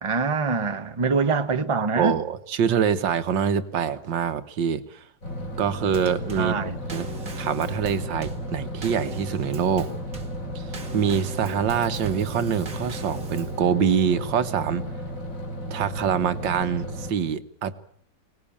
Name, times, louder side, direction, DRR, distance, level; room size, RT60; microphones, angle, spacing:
voice 1, 0.0-2.2 6.4-6.8, right 4 dB, 20° right, 1.1 m, -24 dB
voice 2, 1.8-5.0 5.6-7.1 7.4-9.9 10.6-10.7 10.9-14.8 15.7-17.7, right 7 dB, 85° right, 1.9 m, -25 dB
sound 1, 5.2-17.1, equal, 45° left, 4.9 m, -34 dB
Drum kit / Snare drum / Bass drum, 5.9-13.6, right 2 dB, 50° right, 2.4 m, -40 dB
24.5 x 19.0 x 8.7 m
omnidirectional pair, 1.9 m